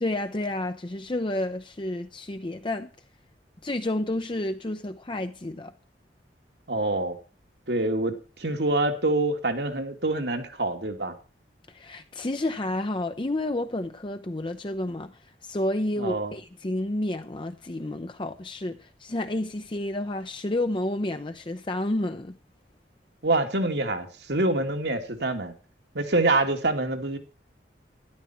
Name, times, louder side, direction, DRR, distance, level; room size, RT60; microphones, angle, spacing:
voice 1, 0.0-2.9 3.6-5.7 11.7-22.4, left 1 dB, 30° left, 0.6 m, -30 dB
voice 2, 6.7-7.2 7.7-11.1 16.0-16.3 23.2-25.5 25.9-27.2, right 2 dB, 75° right, 2.3 m, -26 dB
13.0 x 11.5 x 4.4 m
head